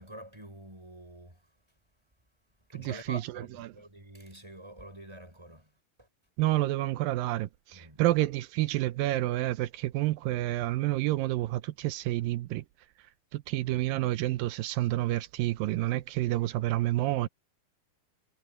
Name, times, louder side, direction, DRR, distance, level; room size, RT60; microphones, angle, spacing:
voice 1, 0.0-1.4 2.7-5.7 6.0-6.1 7.7-8.0 13.7-13.8, equal, 5° right, 6.5 m, -47 dB
voice 2, 2.7-3.2 3.6-3.7 6.4-12.6 13.3-17.3, right 16 dB, 80° right, 2.2 m, -29 dB
omnidirectional pair, 4.4 m